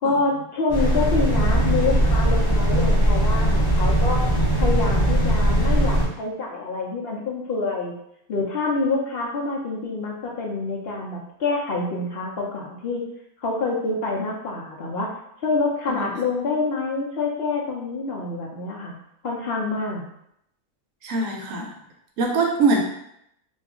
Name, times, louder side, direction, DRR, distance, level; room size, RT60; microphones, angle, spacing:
voice 1, 0.0-4.2 4.6-7.9 8.3-13.0 13.4-15.1 15.4-18.9 19.2-20.0, left 3 dB, 55° left, -2 dB, 0.7 m, -26 dB
sound 1, 0.7-6.0, right 1 dB, 20° left, 0.7 m, -19 dB
voice 2, 21.0-21.7 22.2-22.8, right 3 dB, 70° right, 0 dB, 0.9 m, -23 dB
2.6 x 2.3 x 3.6 m, 0.75 s
omnidirectional pair, 1.6 m